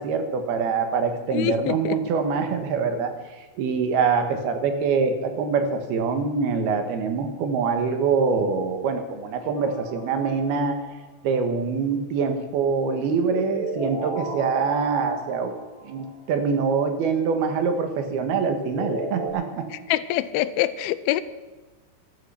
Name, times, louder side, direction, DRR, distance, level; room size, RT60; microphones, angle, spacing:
voice 1, 0.0-10.8 11.2-15.5 15.8-19.7, right 5 dB, 90° right, 7 dB, 3.4 m, -24 dB
voice 2, 1.3-2.0 19.9-21.2, left 14 dB, 85° left, 14 dB, 2.5 m, -25 dB
sound 1, 9.6-10.7 12.9-16.2 18.6-19.3, equal, 45° left, 2.9 m, -34 dB
14.5 x 13.0 x 5.8 m, 1.3 s
omnidirectional pair, 4.4 m